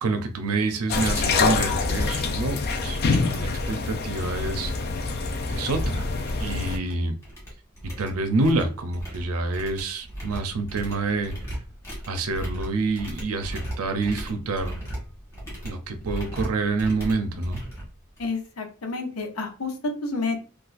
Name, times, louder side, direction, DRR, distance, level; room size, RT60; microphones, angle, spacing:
voice 1, 0.0-4.7 5.5-6.1 6.4-7.2 8.0-11.3 12.1-14.8 15.6-17.6, right 3 dB, 70° right, 7 dB, 0.6 m, -27 dB
sound 1, 0.9-6.8, left 4 dB, 45° left, 0.4 m, -26 dB
sound 2, 4.9-5.1 5.4-5.7 6.0-6.9 7.2-18.5, equal, 15° left, 1.6 m, -37 dB
voice 2, 18.2-20.4, left 3 dB, 70° left, 3 dB, 0.7 m, -30 dB
4.0 x 2.3 x 2.5 m, 0.37 s
head